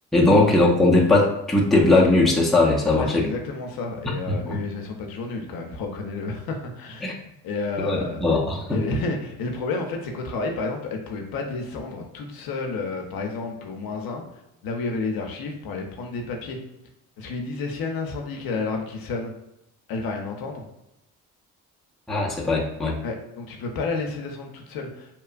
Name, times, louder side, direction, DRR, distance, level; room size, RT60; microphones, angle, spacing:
voice 1, 0.1-3.3 4.5-4.6 7.0-7.1 7.8-8.8 22.1-23.0, left 2 dB, ahead, -3 dB, 0.5 m, -19 dB
voice 2, 2.9-7.1 7.4-8.2 8.7-14.2 14.6-16.6 17.2-19.3 19.9-20.7 23.0-25.1, left 3 dB, 60° left, 2 dB, 0.6 m, -30 dB
2.9 x 2.3 x 2.3 m, 0.87 s
supercardioid pair, 60°, 40 cm